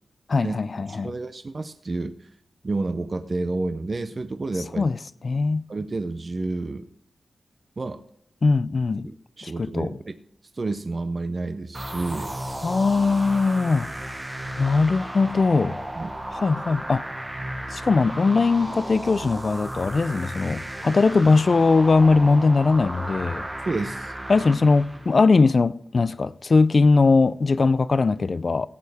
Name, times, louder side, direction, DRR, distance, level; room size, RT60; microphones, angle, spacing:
voice 1, 0.3-1.1 4.8-5.0 5.2-5.7 8.4-9.1 9.4-9.9 12.6-13.9 14.6-15.8 16.3-17.1 17.7-23.5 24.3-28.7, left 4 dB, 40° left, 0.4 m, -20 dB
voice 2, 0.9-2.3 2.6-4.9 5.7-6.9 7.8-8.0 9.0-10.1 10.5-12.4 15.9-16.1 23.6-24.1, right 3 dB, 35° right, 0.5 m, -30 dB
sound 1, 11.7-25.2, right 1 dB, 10° right, 0.9 m, -34 dB
17.5 x 8.4 x 3.5 m
wide cardioid pair, 140°, 0 cm